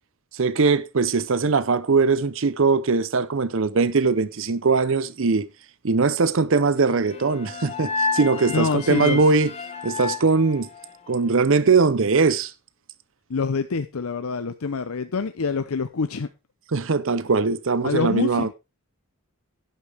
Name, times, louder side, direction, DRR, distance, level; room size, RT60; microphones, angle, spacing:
voice 1, 0.3-5.5 5.8-9.5 9.8-10.7 11.1-12.5 16.7-18.5, right 4 dB, 60° right, 0.6 m, -21 dB
Bowed string instrument, 6.7-10.4, left 3 dB, 45° left, 1.9 m, -48 dB
sound 1, 7.1-11.3, left 4 dB, 30° left, 1.3 m, -31 dB
voice 2, 8.5-9.2 13.3-16.3 17.8-18.5, left 4 dB, 80° left, 0.6 m, -26 dB
11.5 x 10.0 x 3.5 m
head